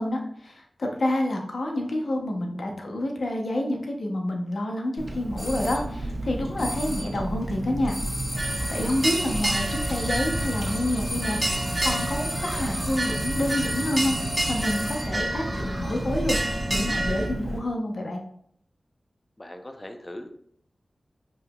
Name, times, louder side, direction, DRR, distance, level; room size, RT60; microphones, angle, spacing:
voice 1, 0.0-7.9 8.7-11.5 11.8-16.4 16.7-18.2, left 1 dB, 70° left, 1 dB, 0.7 m, -28 dB
Car, 5.0-17.6, right 1 dB, 55° right, 1.2 m, -33 dB
sound 1, 5.4-5.9 6.6-7.2 7.9-15.2, equal, 5° left, 1.2 m, -35 dB
sound 2, 8.3-17.3, right 1 dB, 25° right, 1.3 m, -30 dB
voice 2, 19.4-20.3, left 1 dB, 30° left, 6 dB, 0.6 m, -40 dB
5.4 x 2.9 x 2.3 m, 0.67 s
cardioid pair, 45°, 0 cm